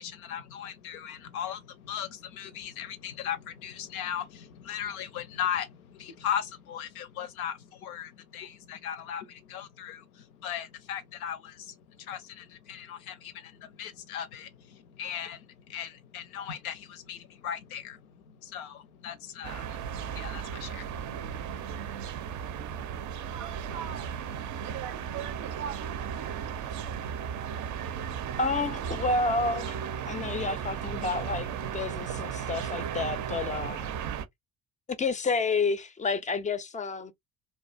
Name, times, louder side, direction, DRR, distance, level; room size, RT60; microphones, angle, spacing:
voice 1, 0.0-22.0, left 9 dB, 85° left, 0.5 m, -38 dB
sound 1, 19.4-34.3, right 8 dB, 45° right, 0.5 m, -35 dB
voice 2, 23.3-26.9, right 8 dB, 85° right, 0.7 m, -43 dB
voice 3, 28.4-29.8 30.0-33.9 34.9-37.1, left 3 dB, 20° left, 0.3 m, -30 dB
2.5 x 2.1 x 2.4 m
hypercardioid pair, 55°, 42 cm